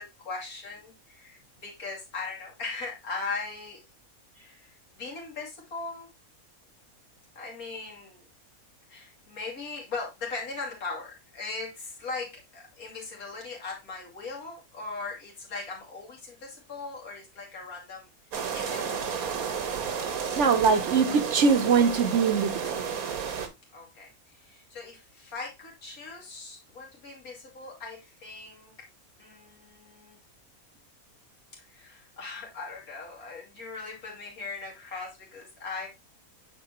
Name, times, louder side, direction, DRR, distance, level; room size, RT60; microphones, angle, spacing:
voice 1, 0.0-3.8 4.4-6.1 7.3-8.3 8.9-18.1 18.5-19.4 23.7-28.7 29.2-30.2 31.5-35.9, left 4 dB, 80° left, 3.0 m, -39 dB
sound 1, 18.3-23.5, right 6 dB, 80° right, 1.6 m, -32 dB
voice 2, 20.4-22.8, right 5 dB, 60° right, 1.1 m, -22 dB
8.9 x 4.6 x 2.9 m
omnidirectional pair, 1.5 m